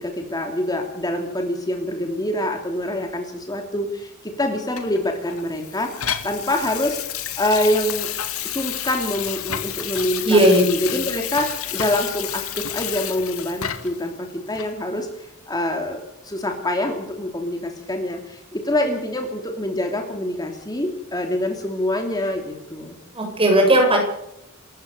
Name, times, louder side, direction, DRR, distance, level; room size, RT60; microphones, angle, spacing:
voice 1, 0.0-5.9 6.2-7.0 7.4-8.1 8.4-16.0 16.2-23.0, left 1 dB, 20° left, 3 dB, 3.1 m, -25 dB
Water tap faucet / Sink (filling or washing), 4.8-14.0 14.5-14.7, left 10 dB, 80° left, 2.4 m, -30 dB
voice 2, 10.2-10.6 23.1-24.0, right 1 dB, 25° right, 2 dB, 7.3 m, -15 dB
29.0 x 14.5 x 6.8 m, 0.81 s
head